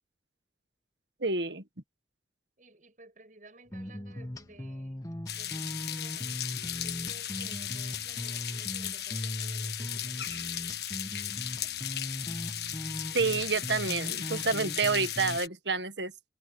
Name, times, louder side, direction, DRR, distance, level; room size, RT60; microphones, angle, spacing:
voice 1, 1.2-1.6 13.1-16.1, right 4 dB, 75° right, 1.6 m, -29 dB
voice 2, 2.6-6.4 6.8-10.5 11.4-11.8, right 2 dB, 45° right, 6.3 m, -56 dB
sound 1, 3.7-15.4, left 1 dB, 20° left, 1.2 m, -39 dB
sound 2, 5.3-15.5, left 11 dB, 65° left, 1.5 m, -36 dB
head